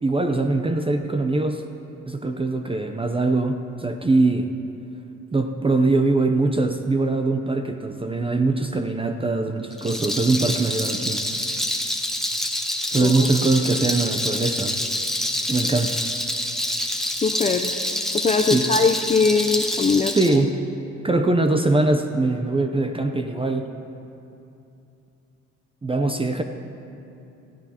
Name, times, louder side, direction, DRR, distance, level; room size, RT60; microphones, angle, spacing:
voice 1, 0.0-1.6 2.1-4.5 5.3-11.2 12.9-14.7 15.4-16.0 18.5-18.7 20.1-20.6 21.0-23.7 25.8-26.4, right 2 dB, 20° right, 6 dB, 0.6 m, -22 dB
Rattle, 9.7-20.4, left 1 dB, ahead, 1.0 m, -27 dB
voice 2, 17.2-17.7 18.1-20.1, left 4 dB, 25° left, 4 dB, 0.5 m, -21 dB
18.5 x 14.0 x 2.9 m, 2.7 s
cardioid pair, 90°, 30 cm